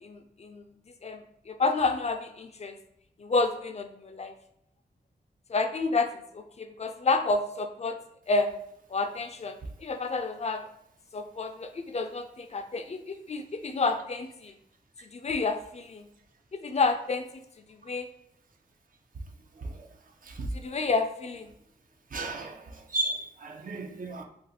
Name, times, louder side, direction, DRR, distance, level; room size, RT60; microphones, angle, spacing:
voice 1, 0.0-0.6 1.0-2.8 3.2-4.3 5.5-6.1 6.3-8.0 8.3-8.5 8.9-10.6 11.1-14.5 15.1-16.1 16.5-17.2 17.8-18.1 20.5-21.5, left 3 dB, 40° left, 6 dB, 0.4 m, -29 dB
voice 2, 19.6-19.9 20.2-20.5 22.1-24.2, right 2 dB, 55° right, 3 dB, 0.5 m, -34 dB
2.5 x 2.4 x 4.1 m, 0.75 s
wide cardioid pair, 70°, 17 cm